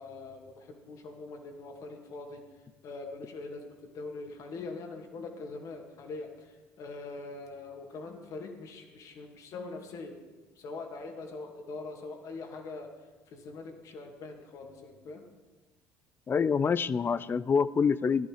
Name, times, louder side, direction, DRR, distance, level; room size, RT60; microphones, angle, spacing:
voice 1, 0.0-2.4 2.8-3.6 3.9-10.2 10.6-12.9 13.3-15.2, left 3 dB, 55° left, 3 dB, 2.6 m, -42 dB
voice 2, 16.3-18.3, left 6 dB, 35° left, 18 dB, 0.6 m, -26 dB
15.5 x 11.5 x 4.9 m, 1.2 s
hypercardioid pair, 70°, 7 cm